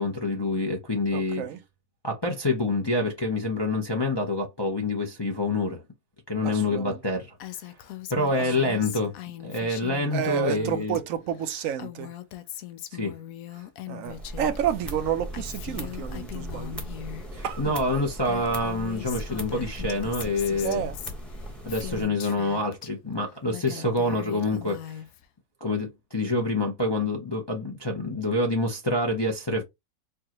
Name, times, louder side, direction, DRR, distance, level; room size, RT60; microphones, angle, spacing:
voice 1, 0.0-1.4 2.0-5.8 6.3-7.4 8.1-9.2 9.4-11.0 12.9-13.1 13.5-13.6 17.3-20.8 21.6-25.0 25.6-29.6, left 2 dB, 25° left, 0.5 m, -27 dB
voice 2, 1.1-1.6 6.4-7.0 8.3-9.1 10.1-12.1 13.9-16.8 17.4-17.8 20.6-21.0 23.8-23.9, right 9 dB, 65° right, 0.9 m, -31 dB
Female speech woman speaking, 7.4-11.0 11.3-14.6 14.9-17.3 17.9-18.0 18.2-22.9 23.3-25.2, left 12 dB, 70° left, 0.9 m, -40 dB
sound 1, 14.1-22.0, equal, ahead, 0.9 m, -38 dB
4.5 x 2.4 x 2.9 m
omnidirectional pair, 1.7 m